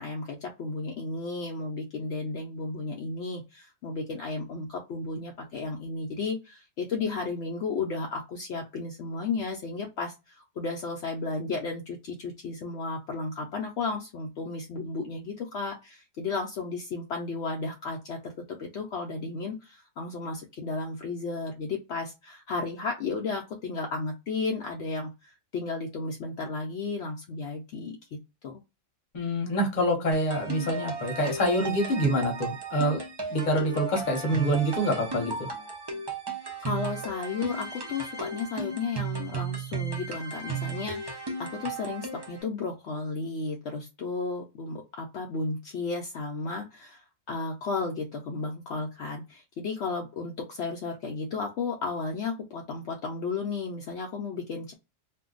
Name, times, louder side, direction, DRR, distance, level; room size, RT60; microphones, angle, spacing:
voice 1, 0.0-28.2 28.4-28.6 36.6-54.7, left 4 dB, 70° left, 0 dB, 0.8 m, -33 dB
voice 2, 29.1-33.0 33.3-35.3, equal, 40° left, 2 dB, 0.9 m, -26 dB
sound 1, 30.1-42.4, right 4 dB, 35° right, 0.4 m, -35 dB
2.6 x 2.2 x 3.7 m, 0.26 s
omnidirectional pair, 1.3 m